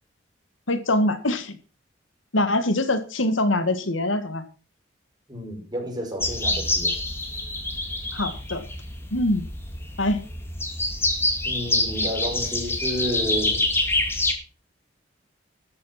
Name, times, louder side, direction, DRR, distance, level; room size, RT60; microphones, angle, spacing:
voice 1, 0.7-1.6 2.3-4.4 8.1-8.6 9.1-9.5 10.0-10.2, left 1 dB, 80° left, 10 dB, 1.9 m, -23 dB
voice 2, 5.3-6.9 11.4-13.7, equal, 20° right, 2 dB, 5.3 m, -31 dB
sound 1, 6.2-14.3, left 2 dB, 10° left, 2.4 m, -26 dB
13.5 x 8.8 x 5.8 m, 0.36 s
head